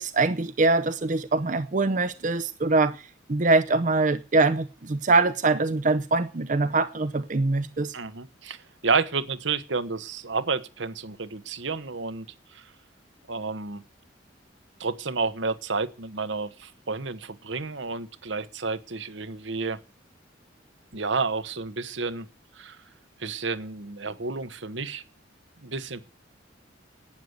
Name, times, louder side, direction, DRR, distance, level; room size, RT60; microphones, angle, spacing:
voice 1, 0.0-7.9, right 3 dB, 40° right, 0.7 m, -23 dB
voice 2, 7.9-12.3 12.5-12.6 13.3-13.8 14.8-19.8 20.9-22.3 22.6-22.8 23.2-25.0 25.6-26.0, right 4 dB, 75° right, 1.1 m, -30 dB
12.0 x 9.5 x 8.0 m
head